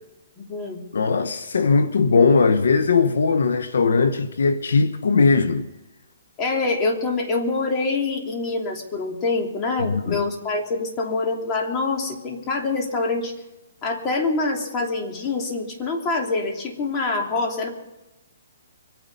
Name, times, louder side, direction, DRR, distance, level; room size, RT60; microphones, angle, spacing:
voice 1, 0.4-0.8 6.4-13.3 13.8-17.7, left 3 dB, 25° left, 3.0 m, -25 dB
voice 2, 0.9-5.7 9.8-10.2, left 4 dB, 80° left, 1.0 m, -19 dB
24.5 x 9.5 x 5.5 m
hypercardioid pair, 155°, 0 cm